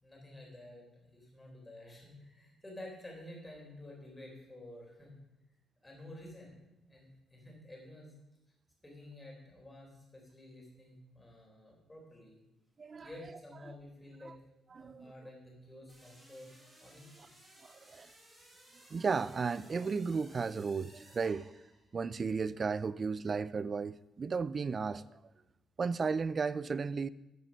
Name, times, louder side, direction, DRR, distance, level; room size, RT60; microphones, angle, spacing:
voice 1, 0.0-5.2 5.8-6.5 6.8-8.1 8.8-12.4 13.0-14.4 14.7-16.5 16.8-17.3, left 1 dB, 15° left, 3.8 m, -51 dB
voice 2, 14.7-15.1 17.7-18.1 18.9-21.5 21.9-25.2 25.8-27.1, right 5 dB, 30° right, 0.4 m, -34 dB
sound 1, 15.9-22.1, right 1 dB, 15° right, 3.5 m, -60 dB
13.0 x 6.7 x 5.2 m
cardioid pair, 125°, 0 cm